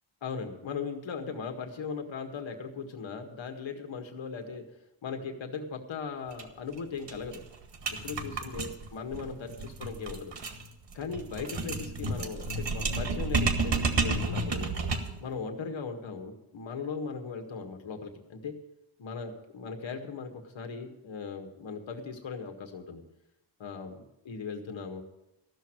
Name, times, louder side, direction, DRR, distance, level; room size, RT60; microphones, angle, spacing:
voice 1, 0.2-4.6 5.0-7.4 7.9-10.3 10.9-14.7 15.2-18.5 19.0-23.0 23.6-25.0, left 5 dB, 65° left, 4 dB, 1.8 m, -38 dB
sound 1, 6.3-6.4 6.7-6.8 7.1-15.2, right 3 dB, 60° right, 1.8 m, -31 dB
14.5 x 6.4 x 9.0 m, 0.91 s
cardioid pair, 100°, 49 cm